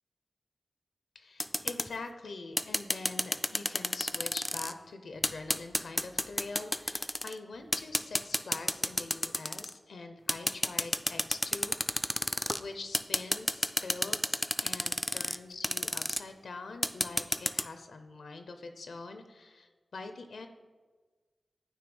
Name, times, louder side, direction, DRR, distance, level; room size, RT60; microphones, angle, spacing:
voice 1, 1.1-12.3 12.6-20.5, left 3 dB, 90° left, 7 dB, 0.5 m, -44 dB
sound 1, 1.4-1.9 2.6-4.7 5.2-7.3 7.7-9.7 10.3-12.6 12.9-15.4 15.6-16.2 16.8-17.6, left 1 dB, 15° left, 0.3 m, -30 dB
9.2 x 3.1 x 5.3 m, 1.4 s
cardioid pair, 50°, 0 cm